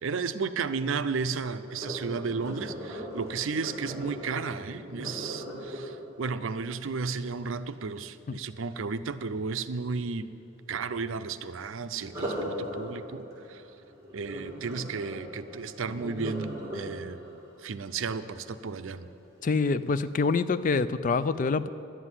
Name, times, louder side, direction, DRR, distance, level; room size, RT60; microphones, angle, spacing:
voice 1, 0.0-10.3 10.7-13.6 14.1-17.2 17.6-19.1, right 4 dB, 75° right, 12 dB, 0.5 m, -33 dB
Sink (filling or washing), 1.7-7.6 12.0-19.0 19.6-19.9 20.4-20.5, equal, 15° right, 2.5 m, -39 dB
voice 2, 19.4-21.7, left 4 dB, 40° left, 14 dB, 0.3 m, -26 dB
11.5 x 7.6 x 9.8 m, 2.8 s
head